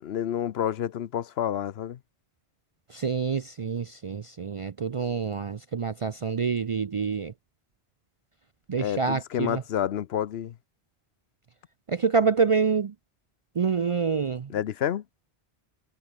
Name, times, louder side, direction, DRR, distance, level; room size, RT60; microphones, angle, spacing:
voice 1, 0.0-2.0 8.8-10.5 14.5-15.0, left 10 dB, 75° left, 0.9 m, -29 dB
voice 2, 2.9-7.3 8.7-9.6 11.9-12.9 13.6-14.5, right 5 dB, 45° right, 0.4 m, -27 dB
omnidirectional pair, 1.1 m